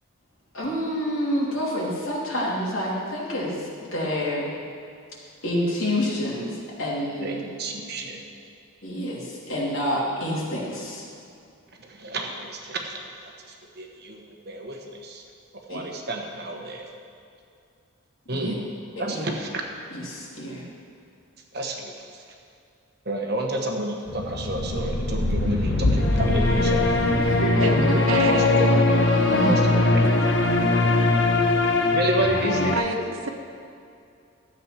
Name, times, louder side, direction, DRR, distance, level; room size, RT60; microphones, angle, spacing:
voice 1, 0.5-4.5 5.4-7.4 8.8-11.1 15.7-15.8 18.3-18.5 19.0-19.2 19.9-20.7 27.1-28.0 29.3-29.7, equal, 75° left, -5 dB, 3.0 m, -28 dB
voice 2, 7.2-8.3 11.8-15.2 15.7-16.9 18.3-18.7 19.0-19.5 21.5-21.9 23.0-26.9 27.9-30.3 30.6-31.3 31.9-32.8, right 2 dB, 50° right, 2 dB, 1.2 m, -30 dB
sound 1, 24.1-32.8, left 2 dB, 60° left, 0.9 m, -21 dB
voice 3, 28.1-28.6 32.7-33.0, right 2 dB, 85° right, 3 dB, 1.2 m, -27 dB
12.5 x 8.1 x 5.9 m, 2.5 s
head